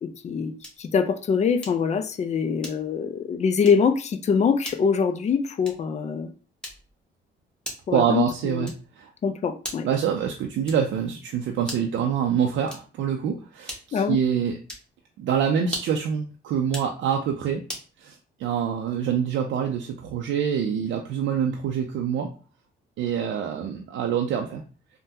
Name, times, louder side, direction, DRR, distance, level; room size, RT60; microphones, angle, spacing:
voice 1, 0.0-0.5 0.8-6.3 7.9-8.7 9.2-9.9 13.9-14.2, left 6 dB, 35° left, 9 dB, 0.4 m, -24 dB
sound 1, 0.6-0.9 1.6-1.9 2.6-3.0 3.6-3.9 4.6-4.9 5.6-6.0 6.6-7.0 7.6-8.0 8.6-9.0 9.6-10.0 10.6-11.0 11.6-12.0 12.6-13.0 13.6-14.1 14.6-14.9 15.6-16.1 16.6-17.0 17.7-17.9, equal, 5° left, 1.1 m, -39 dB
voice 2, 7.9-8.7 9.0-9.1 9.8-14.5 15.2-17.6 18.0-22.3 23.0-24.6, right 8 dB, 75° right, 2 dB, 0.5 m, -26 dB
3.4 x 2.2 x 2.7 m, 0.37 s
cardioid pair, 90°, 20 cm